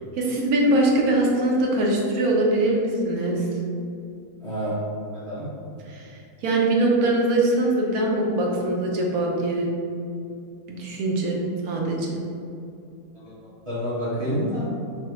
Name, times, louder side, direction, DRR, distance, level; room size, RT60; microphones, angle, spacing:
voice 1, 0.2-3.5 5.9-6.1 6.4-9.7 10.7-12.2, right 1 dB, 70° right, -2 dB, 1.2 m, -22 dB
voice 2, 4.4-5.4 13.1-13.3 13.6-14.7, equal, 25° right, -11 dB, 1.1 m, -28 dB
5.9 x 2.3 x 3.1 m, 2.5 s
omnidirectional pair, 1.7 m